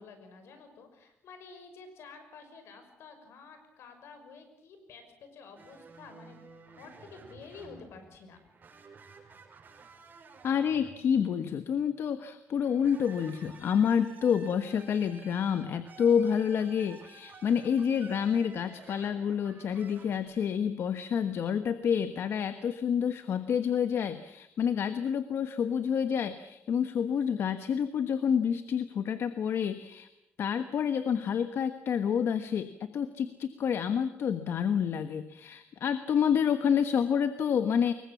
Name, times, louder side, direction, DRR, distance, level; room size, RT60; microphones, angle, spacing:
voice 1, 0.0-8.4, left 4 dB, 85° left, 7 dB, 5.8 m, -50 dB
sound 1, 5.6-11.6 12.5-20.2, right 4 dB, 45° right, 6.0 m, -53 dB
voice 2, 10.4-30.1 30.4-37.9, left 7 dB, 70° left, 10 dB, 1.3 m, -28 dB
25.0 x 22.5 x 7.4 m, 0.83 s
cardioid pair, 100°, 4 cm